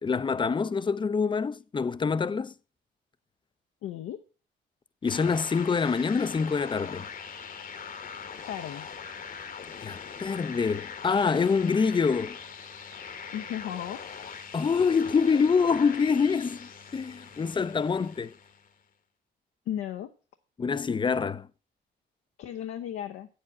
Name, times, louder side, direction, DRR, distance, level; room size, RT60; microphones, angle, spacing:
voice 1, 0.0-2.5 5.0-7.1 9.8-12.4 14.5-18.3 20.6-21.5, left 5 dB, 25° left, 0.5 m, -26 dB
voice 2, 3.8-4.2 8.5-8.9 13.3-14.0 19.7-20.1 22.4-23.3, left 10 dB, 85° left, 0.7 m, -35 dB
sound 1, 5.0-18.7, left 6 dB, 45° left, 1.0 m, -42 dB
8.3 x 7.4 x 6.0 m
cardioid pair, 90°, 20 cm